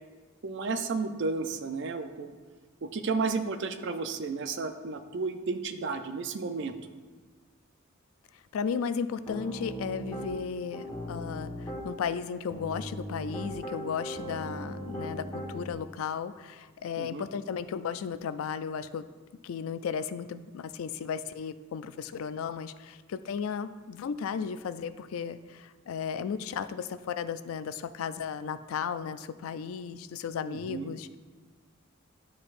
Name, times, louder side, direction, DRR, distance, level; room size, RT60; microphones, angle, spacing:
voice 1, 0.4-2.4 2.8-6.7 17.0-17.3 30.4-30.9, right 4 dB, 60° right, 9 dB, 0.5 m, -32 dB
voice 2, 8.5-19.1 19.4-31.2, left 6 dB, 80° left, 13 dB, 0.3 m, -35 dB
Piano, 9.3-10.3 10.7-11.8 12.5-15.7, equal, 15° left, 1.3 m, -38 dB
11.5 x 4.4 x 2.5 m, 1.4 s
head